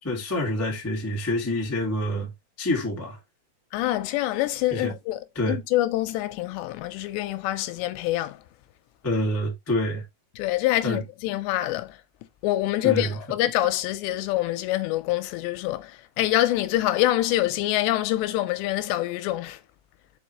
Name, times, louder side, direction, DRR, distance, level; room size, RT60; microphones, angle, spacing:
voice 1, 0.0-2.3 2.6-3.2 4.7-4.9 5.3-5.6 9.0-10.0 10.8-11.0 12.8-13.2, left 1 dB, 15° left, 0.5 m, -27 dB
voice 2, 3.7-8.4 10.4-12.0 12.4-15.9 16.2-19.6, left 15 dB, 90° left, 3.0 m, -25 dB
6.3 x 5.0 x 3.1 m
omnidirectional pair, 4.9 m